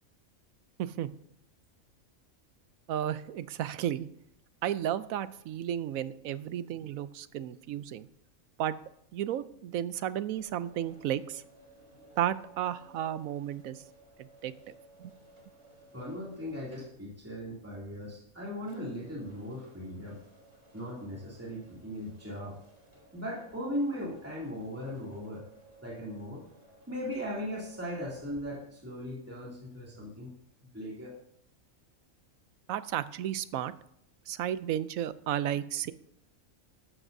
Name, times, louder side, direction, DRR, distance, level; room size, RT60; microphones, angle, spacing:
voice 1, 0.8-1.1 2.9-4.1 4.6-8.1 8.6-8.7 9.1-11.4 12.2-13.8 14.2-14.5 15.0-15.1 32.7-33.7 34.3-35.9, right 11 dB, 85° right, 15 dB, 1.0 m, -33 dB
sound 1, 10.3-28.4, right 2 dB, 50° right, 3.9 m, -58 dB
voice 2, 15.9-20.2 20.7-22.6 23.1-25.4 25.8-26.4 26.9-30.3 30.7-31.1, equal, 10° right, -5 dB, 2.5 m, -38 dB
14.0 x 12.0 x 2.7 m, 0.73 s
omnidirectional pair, 1.4 m